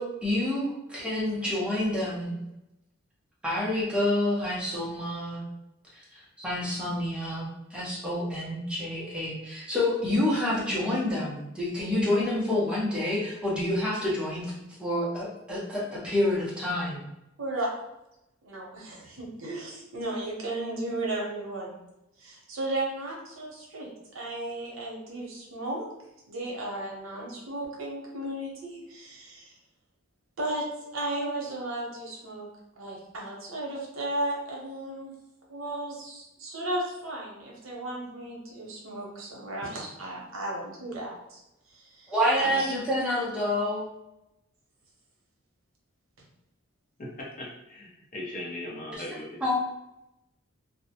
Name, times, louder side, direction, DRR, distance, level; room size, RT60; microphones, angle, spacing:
voice 1, 0.0-2.3 3.4-5.4 6.1-14.5 14.8-17.0 42.1-43.9 48.9-49.0 49.4-49.6, left 1 dB, 5° right, -6 dB, 0.7 m, -28 dB
voice 2, 17.4-17.7 18.4-21.8 22.2-23.9 24.1-25.9 26.3-29.5 30.4-30.7 30.9-32.5 32.7-35.1 35.5-41.4 41.7-42.7, right 1 dB, 85° right, -2 dB, 0.7 m, -35 dB
voice 3, 47.4-49.6, left 1 dB, 40° left, -3 dB, 0.6 m, -39 dB
2.2 x 2.0 x 2.7 m, 0.90 s
head